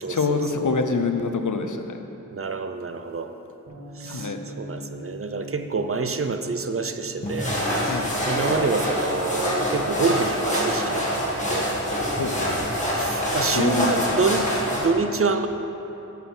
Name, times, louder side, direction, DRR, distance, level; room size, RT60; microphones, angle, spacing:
voice 1, 0.1-2.0 4.0-4.4 7.8-8.0 12.1-12.3 13.5-14.2, left 4 dB, 70° left, 6 dB, 0.7 m, -26 dB
voice 2, 2.3-3.3 4.0-4.3 4.6-7.6 8.3-11.8 12.9-14.4 14.7-15.5, right 4 dB, 45° right, 8 dB, 0.5 m, -27 dB
Bass guitar, 3.7-9.9, right 2 dB, 60° right, 2.1 m, -43 dB
sound 1, 7.2-14.9, equal, 25° left, 2.0 m, -25 dB
8.4 x 5.6 x 6.1 m, 2.9 s
wide cardioid pair, 65°, 31 cm